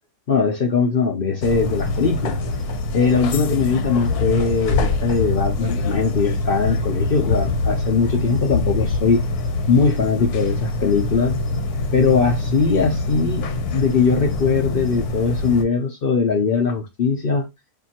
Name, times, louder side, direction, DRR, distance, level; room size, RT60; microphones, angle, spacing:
voice 1, 0.3-2.4 2.9-9.2 9.7-11.4 11.9-13.4 13.7-17.4, left 5 dB, 50° left, 0.7 m, -20 dB
sound 1, 1.4-15.6, left 2 dB, 75° left, 1.3 m, -24 dB
6.8 x 2.7 x 2.8 m
omnidirectional pair, 1.7 m